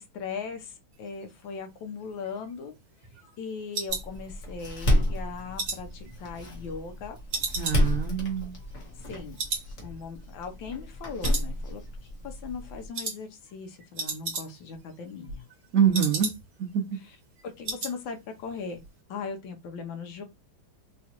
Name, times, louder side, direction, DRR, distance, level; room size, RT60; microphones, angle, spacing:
voice 1, 0.0-2.7 3.4-7.2 9.0-9.4 9.8-15.4 17.4-18.8 19.1-20.2, left 5 dB, 70° left, 1.4 m, -39 dB
sound 1, 2.0-4.8 5.2-6.9 7.3-9.1 9.4-9.7 10.0-10.1 10.6-11.0 11.2-12.0 12.3-12.6 12.9-13.2 13.5-13.6 13.8-14.8 15.1-16.7 17.0-17.1 17.4-18.0 18.3-18.5 18.8-18.9, right 4 dB, 50° right, 1.4 m, -35 dB
Door, 3.9-12.9, left 1 dB, 45° left, 1.1 m, -31 dB
voice 2, 7.6-8.6 15.7-16.3 16.6-16.8, right 8 dB, 75° right, 0.7 m, -25 dB
4.1 x 2.3 x 2.9 m
omnidirectional pair, 2.3 m